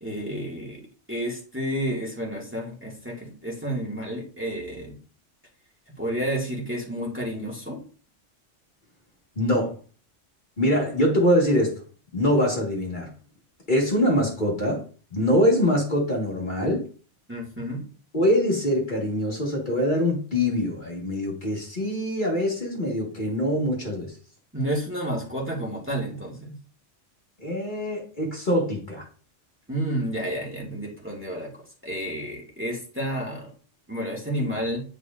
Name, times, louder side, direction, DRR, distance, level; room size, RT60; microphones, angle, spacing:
voice 1, 0.0-0.8 1.1-5.0 6.0-7.8 17.3-17.8 24.5-26.5 29.7-31.5 31.8-33.5 33.9-34.8, right 1 dB, 10° right, -3 dB, 1.8 m, -30 dB
voice 2, 9.4-9.8 10.6-11.8 12.1-13.1 13.7-14.8 15.1-16.9 18.1-24.1 27.4-29.1, equal, 40° left, -2 dB, 1.8 m, -23 dB
9.5 x 5.1 x 2.5 m, 0.38 s
omnidirectional pair, 1.3 m